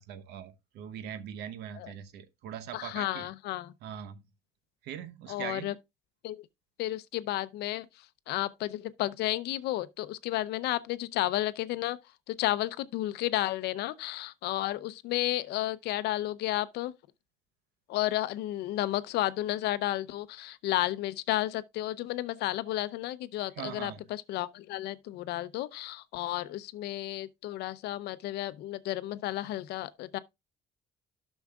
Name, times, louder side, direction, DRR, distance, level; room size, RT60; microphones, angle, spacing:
voice 1, 0.0-3.3 3.8-4.2 4.8-5.7 23.6-24.0, right 9 dB, 85° right, 0.9 m, -41 dB
voice 2, 2.7-3.7 5.3-5.7 6.2-6.5 6.8-7.9 8.3-12.0 12.3-16.9 17.9-30.2, left 15 dB, 80° left, 0.6 m, -32 dB
12.0 x 6.2 x 2.3 m
cardioid pair, 110°, 17 cm